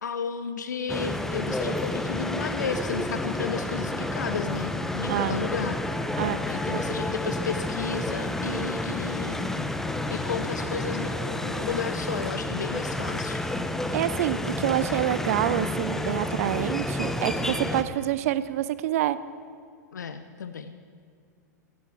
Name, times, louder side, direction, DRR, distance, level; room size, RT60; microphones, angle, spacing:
voice 1, 0.0-5.8 6.5-9.5 10.1-13.4 19.9-20.7, left 5 dB, 75° left, 10 dB, 0.7 m, -33 dB
sound 1, 0.9-17.8, left 1 dB, 5° left, 0.8 m, -30 dB
voice 2, 13.9-19.2, right 13 dB, 55° right, 16 dB, 0.6 m, -27 dB
17.0 x 14.5 x 4.7 m, 2.2 s
figure-of-eight pair, 100°, 10 cm